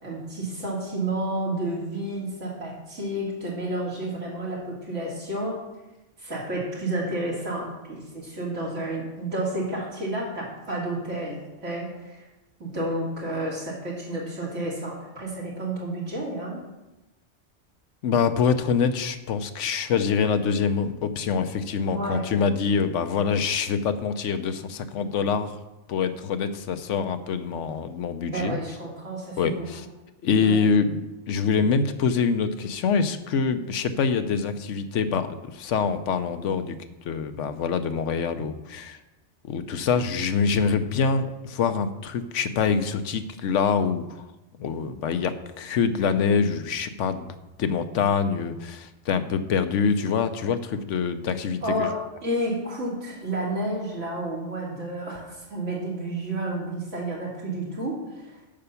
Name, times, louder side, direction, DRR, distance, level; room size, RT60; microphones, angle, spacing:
voice 1, 0.0-5.6 6.2-12.2 12.6-16.6 21.9-22.3 28.3-29.7 30.4-30.6 51.6-58.4, right 1 dB, 85° right, -4 dB, 3.1 m, -31 dB
voice 2, 18.0-25.6 25.9-28.6 29.4-29.8 30.2-36.7 37.0-39.0 39.4-44.3 44.6-51.9, left 6 dB, 80° left, 10 dB, 1.1 m, -25 dB
8.7 x 5.7 x 6.9 m, 1.0 s
omnidirectional pair, 1.2 m